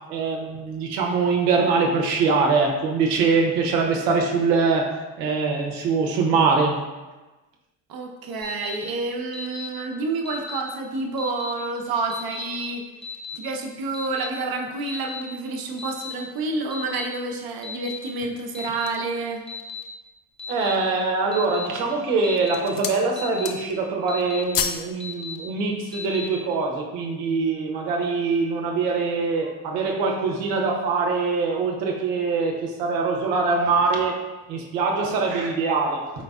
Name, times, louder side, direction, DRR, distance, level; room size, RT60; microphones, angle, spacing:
voice 1, 0.1-4.9 5.2-6.8 20.5-34.2 34.5-36.2, right 4 dB, 85° right, 0 dB, 0.9 m, -23 dB
voice 2, 7.9-12.8 13.3-19.4, right 3 dB, 50° right, 2 dB, 0.8 m, -29 dB
Alarm, 8.4-8.8 9.3-9.7 10.3-10.6 11.2-11.5 12.1-12.5 13.0-13.4 13.9-14.3 14.9-15.2 15.8-16.1 16.7-17.1 17.6-18.0 18.5-18.9 19.5-19.8 20.4-20.8 21.3-21.7 22.2-22.6 23.2-23.5 24.1-24.4 25.0-25.4 25.9-26.3, left 6 dB, 10° left, 0.8 m, -35 dB
sound 1, 18.2-19.2 19.8-19.9 20.3-20.9 21.6-21.9 22.3-23.1 23.3-23.9 24.1-24.9 25.2-25.4, left 7 dB, 45° left, 0.5 m, -31 dB
4.6 x 3.9 x 2.3 m, 1.2 s
supercardioid pair, 75°, 47 cm